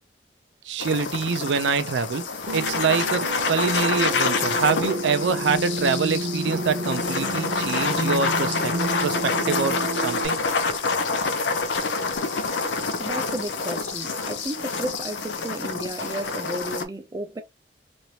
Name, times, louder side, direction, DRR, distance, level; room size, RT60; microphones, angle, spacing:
voice 1, 0.6-2.2 2.5-8.7 9.0-10.4, right 5 dB, 90° right, 0.4 m, -25 dB
sound 1, 0.8-16.8, left 4 dB, 80° left, 0.6 m, -27 dB
sound 2, 2.5-10.3, right 1 dB, 65° right, 0.9 m, -30 dB
voice 2, 13.0-17.4, right 1 dB, 20° right, 0.3 m, -33 dB
3.1 x 2.5 x 2.7 m
head